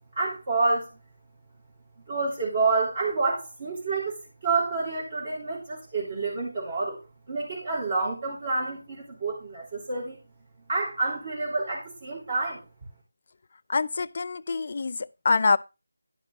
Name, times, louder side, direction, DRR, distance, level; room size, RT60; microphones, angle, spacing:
voice 1, 0.1-1.0 2.1-7.0 7.3-10.2 10.7-12.6, right 3 dB, 35° right, 3.4 m, -28 dB
voice 2, 13.7-15.0 15.2-15.6, left 4 dB, 40° left, 0.5 m, -24 dB
11.0 x 5.8 x 4.7 m
figure-of-eight pair, 170°, 0 cm